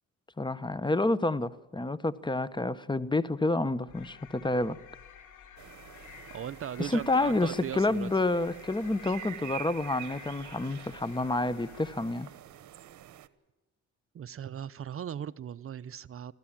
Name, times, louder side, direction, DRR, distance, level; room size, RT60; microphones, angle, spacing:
voice 1, 0.4-4.8 6.8-12.3, left 2 dB, 15° left, 17 dB, 0.9 m, -29 dB
sound 1, 3.9-12.5, left 7 dB, 80° left, 2.9 m, -51 dB
sound 2, 5.6-13.3, right 13 dB, 70° right, 1.1 m, -47 dB
voice 2, 6.3-8.1 14.1-16.3, right 9 dB, 45° right, 17 dB, 0.6 m, -38 dB
25.5 x 15.0 x 7.5 m, 1.2 s
cardioid pair, 90°, 30 cm